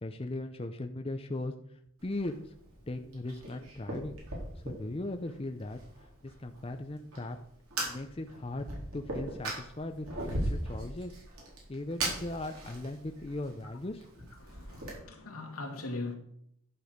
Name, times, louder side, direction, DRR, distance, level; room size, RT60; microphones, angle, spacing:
voice 1, 0.0-1.5 2.0-2.4 2.9-4.2 4.6-5.8 6.2-7.4 7.8-8.7 8.9-11.2 11.7-14.0, left 2 dB, 25° left, 0.6 m, -38 dB
Fire, 2.0-14.9, right 1 dB, 80° right, 3.7 m, -40 dB
voice 2, 14.4-16.2, left 2 dB, 85° left, 2.0 m, -40 dB
11.5 x 6.2 x 5.1 m
head